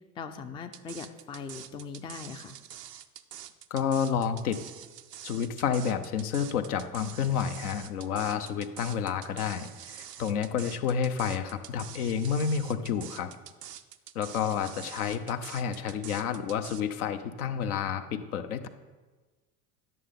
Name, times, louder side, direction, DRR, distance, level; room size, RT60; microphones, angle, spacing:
voice 1, 0.2-2.6, left 5 dB, 10° left, 8 dB, 0.4 m, -40 dB
sound 1, 0.7-16.8, right 10 dB, 90° right, 0.5 m, -46 dB
voice 2, 3.7-4.6 5.2-13.3 14.1-18.7, left 7 dB, 70° left, 9 dB, 0.8 m, -30 dB
11.0 x 6.7 x 3.7 m, 1.3 s
figure-of-eight pair, 70°, 46 cm